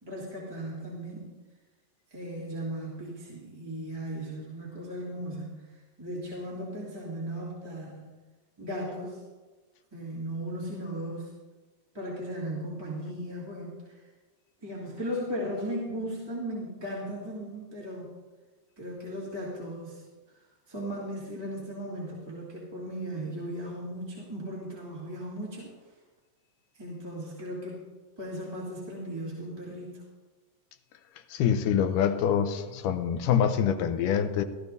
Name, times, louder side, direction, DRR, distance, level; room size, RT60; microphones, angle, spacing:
voice 1, 0.0-1.3 2.1-8.1 8.6-9.2 9.9-11.3 11.9-14.0 14.6-18.1 18.8-20.0 20.7-25.7 26.7-27.9 28.2-30.0, equal, 10° right, -7 dB, 2.1 m, -37 dB
voice 2, 31.3-34.4, left 8 dB, 80° left, 8 dB, 2.3 m, -25 dB
16.5 x 13.5 x 2.7 m, 1.3 s
omnidirectional pair, 3.8 m